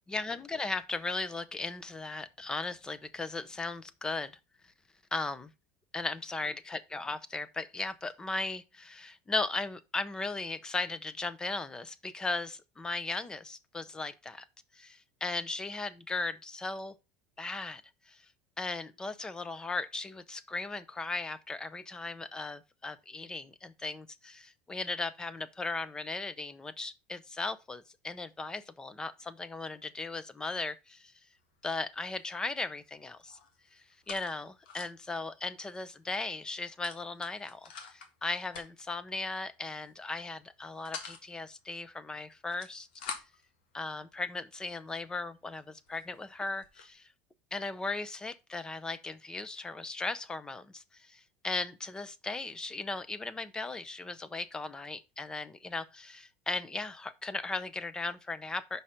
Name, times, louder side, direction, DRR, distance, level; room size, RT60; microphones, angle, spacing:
voice 1, 0.1-4.4 5.1-5.5 5.9-14.5 14.7-16.9 17.4-18.2 18.6-31.1 31.6-33.4 33.7-42.9 43.1-43.2 43.7-47.1 47.5-58.8, left 3 dB, 15° left, 0.7 m, -37 dB
sound 1, 31.4-31.7 32.0-32.8 33.1-35.1 35.5-35.6 35.9-36.1 36.8-38.1 38.5-39.0 39.7-40.0 40.4-41.2 42.3-43.5 44.2-44.3 44.9-45.0 45.6-45.7 45.9-46.9, left 6 dB, 90° left, 1.6 m, -46 dB
5.5 x 4.9 x 5.7 m
supercardioid pair, 115°, 5 cm